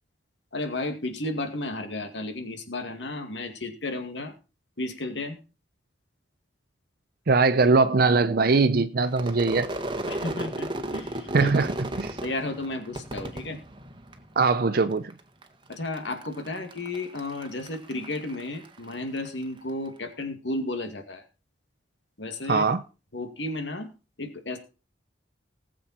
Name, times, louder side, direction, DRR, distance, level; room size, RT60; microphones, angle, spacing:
voice 1, 0.5-4.3 4.8-5.4 10.1-11.5 12.2-13.6 15.7-21.2 22.2-22.6 23.1-23.9 24.2-24.6, left 2 dB, 75° left, 2.3 m, -33 dB
voice 2, 7.3-9.7 11.3-11.7 12.0-12.2 14.4-15.1 22.5-22.8, right 4 dB, 55° right, 0.6 m, -21 dB
Crowd / Fireworks, 9.1-14.5 14.8-15.4 15.7-19.3, right 1 dB, 25° right, 1.6 m, -35 dB
19.5 x 7.6 x 4.3 m
head